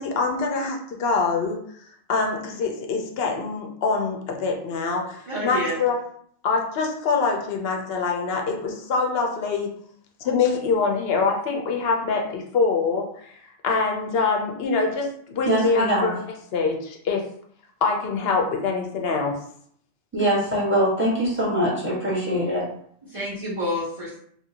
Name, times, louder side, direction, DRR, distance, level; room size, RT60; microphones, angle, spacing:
voice 1, 0.0-1.6 2.1-6.0 6.4-9.7 10.2-16.1 16.5-17.2 17.8-19.4, left 4 dB, 60° left, 2 dB, 0.8 m, -24 dB
voice 2, 5.3-5.8 23.0-24.2, equal, 30° right, -10 dB, 0.8 m, -29 dB
voice 3, 15.4-16.1 20.1-22.6, right 1 dB, 10° right, -6 dB, 1.2 m, -22 dB
2.9 x 2.6 x 2.8 m, 0.63 s
omnidirectional pair, 1.3 m